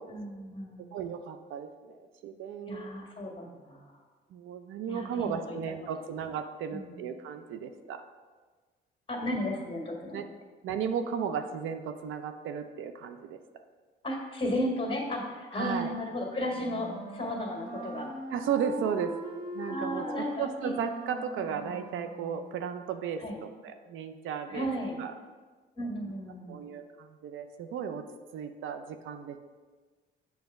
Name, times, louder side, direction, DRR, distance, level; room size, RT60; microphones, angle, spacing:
voice 1, 0.1-0.8 2.7-4.0 4.9-5.6 6.7-7.0 9.1-10.3 14.0-18.1 19.7-20.7 23.2-23.4 24.5-25.0 25.8-26.7, left 1 dB, 25° left, 1 dB, 1.6 m, -34 dB
voice 2, 0.9-2.9 4.3-8.0 10.1-10.3 10.6-13.4 15.6-15.9 18.3-19.1 19.5-24.7 25.0-25.1 26.5-28.0 28.3-29.4, right 7 dB, 80° right, 8 dB, 0.5 m, -35 dB
Wind instrument woodwind instrument, 16.4-22.5, right 1 dB, 20° right, 1.4 m, -40 dB
7.1 x 3.4 x 5.2 m, 1.4 s
cardioid pair, 90°, 20 cm